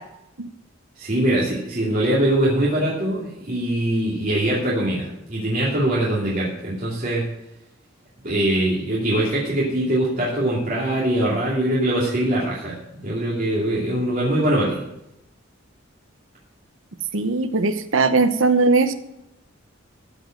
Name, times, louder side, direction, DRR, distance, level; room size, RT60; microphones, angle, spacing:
voice 1, 1.0-7.3 8.2-12.8 13.0-14.8, right 1 dB, 40° right, -7 dB, 2.7 m, -22 dB
voice 2, 17.1-18.9, right 3 dB, 75° right, 9 dB, 1.0 m, -19 dB
15.0 x 5.2 x 7.7 m, 0.84 s
head